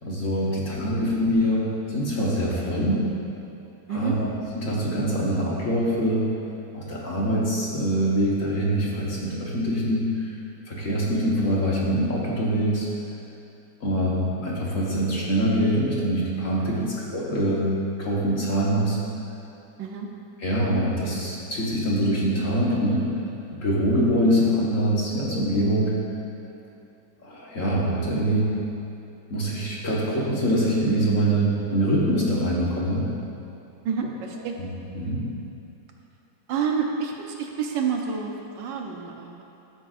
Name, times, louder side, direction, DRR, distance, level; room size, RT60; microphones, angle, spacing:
voice 1, 0.0-3.1 3.9-4.3 4.5-6.3 6.7-10.1 10.7-12.9 13.8-17.7 18.0-19.0 20.4-23.0 23.5-25.9 27.2-28.5 29.3-33.1 34.6-34.7 34.9-35.2, equal, 45° left, -5 dB, 1.5 m, -24 dB
voice 2, 33.8-34.6 36.5-39.4, right 6 dB, 70° right, 1 dB, 1.4 m, -29 dB
14.5 x 7.5 x 2.5 m, 2.8 s
omnidirectional pair, 2.2 m